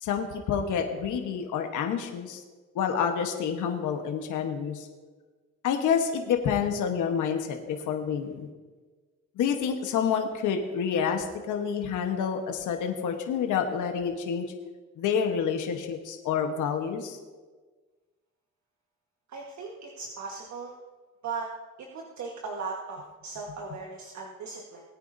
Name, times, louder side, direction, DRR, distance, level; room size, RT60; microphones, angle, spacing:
voice 1, 0.0-2.4 2.7-4.9 5.6-8.5 9.4-14.5 15.0-17.2, left 7 dB, 80° left, 4 dB, 1.3 m, -28 dB
voice 2, 19.3-20.7 21.2-21.5 21.8-24.8, right 4 dB, 65° right, 0 dB, 1.5 m, -38 dB
19.5 x 9.2 x 2.7 m, 1.3 s
cardioid pair, 90°, 30 cm